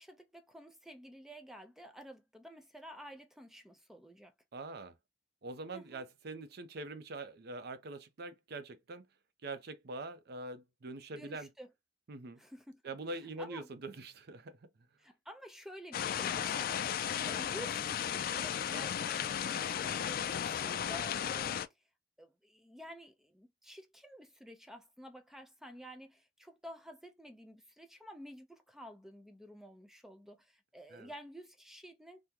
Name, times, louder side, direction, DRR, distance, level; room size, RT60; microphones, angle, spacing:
voice 1, 0.0-4.3 5.7-6.0 11.1-11.7 12.4-12.8 13.4-13.7 15.0-21.7 22.2-32.2, equal, ahead, 0.6 m, -51 dB
voice 2, 4.5-4.9 5.4-9.1 9.4-11.5 12.1-12.4 12.8-14.7 30.9-31.1, right 2 dB, 60° right, 0.5 m, -44 dB
sound 1, 15.9-21.7, left 9 dB, 50° left, 0.3 m, -35 dB
3.5 x 2.1 x 2.8 m
head